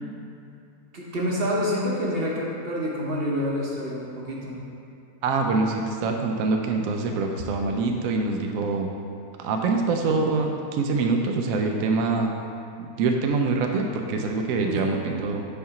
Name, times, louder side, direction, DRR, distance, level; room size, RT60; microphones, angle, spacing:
voice 1, 0.9-4.6 14.6-14.8, equal, 45° right, -3 dB, 1.0 m, -27 dB
voice 2, 5.2-8.9 9.4-12.3 12.8-15.5, right 3 dB, 70° right, 2 dB, 0.9 m, -25 dB
5.6 x 4.3 x 5.8 m, 2.7 s
omnidirectional pair, 1.6 m